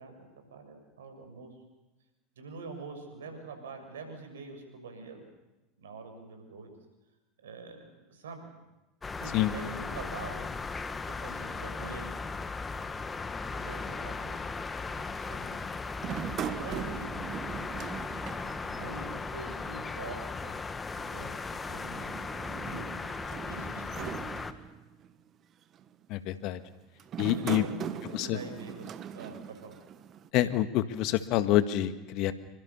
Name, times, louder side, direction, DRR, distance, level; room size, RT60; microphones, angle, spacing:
voice 1, 0.0-1.5 2.4-5.3 5.8-6.7 7.4-8.5 9.1-10.4 11.1-12.1 13.6-15.6 16.4-17.3 18.7-19.1 19.3-20.6 21.1-22.2 22.6-23.0 23.4-24.2 27.4-29.8, right 3 dB, 75° right, 6 dB, 6.8 m, -45 dB
sound 1, 9.0-24.5, left 4 dB, 20° left, 1.8 m, -37 dB
sound 2, 16.0-19.4 19.6-19.7 20.9-25.1 25.7-26.1 27.0-30.3, right 9 dB, 40° right, 1.4 m, -40 dB
voice 2, 26.1-26.6 27.2-27.6 28.1-28.4 30.3-32.3, left 14 dB, 55° left, 11 dB, 1.7 m, -27 dB
28.5 x 24.0 x 7.0 m, 1.0 s
hypercardioid pair, 80°, 0 cm